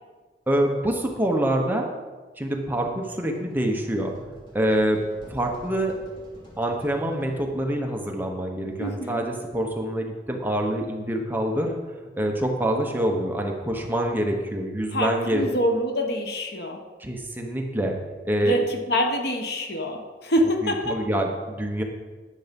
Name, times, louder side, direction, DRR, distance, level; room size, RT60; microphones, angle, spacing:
voice 1, 0.5-1.9 2.4-4.1 4.5-5.0 5.3-5.9 6.6-11.7 12.2-15.5 17.0-17.9 18.2-18.6 20.6-21.8, right 1 dB, 10° right, 1 dB, 1.2 m, -25 dB
sound 1, 2.9-7.7, equal, 30° left, 3.1 m, -48 dB
voice 2, 8.8-9.3 14.9-16.8 18.4-21.0, equal, 65° left, 4 dB, 1.3 m, -26 dB
10.5 x 7.2 x 5.4 m, 1.3 s
head